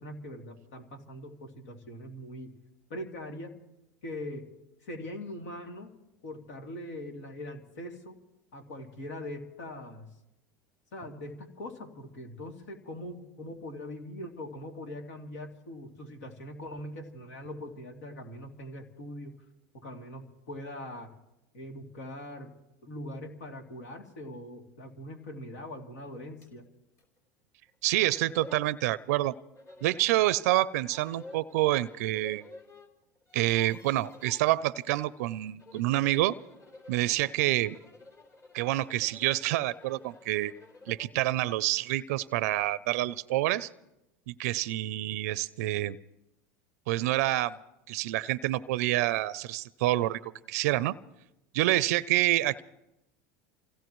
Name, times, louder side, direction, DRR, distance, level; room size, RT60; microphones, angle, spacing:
voice 1, 0.0-2.5 2.9-3.6 4.0-4.5 4.8-5.9 6.2-8.2 8.5-10.1 10.9-19.3 19.7-21.1 21.5-22.5 22.8-26.7, left 1 dB, 80° left, 3 dB, 2.8 m, -42 dB
sound 1, 26.4-26.5 27.0-27.1 27.7-27.8 28.0-28.7 29.5-30.3 30.8-32.9 33.1-34.4 35.4-41.2, left 3 dB, 35° left, 3.6 m, -52 dB
voice 2, 27.8-29.3 29.8-32.4 33.3-36.3 36.9-37.8 38.5-40.5 40.9-43.7 44.3-46.0 46.9-47.6 47.9-51.0 51.5-52.6, right 16 dB, 75° right, 17 dB, 0.5 m, -27 dB
28.0 x 16.5 x 3.1 m, 0.90 s
supercardioid pair, 105°, 8 cm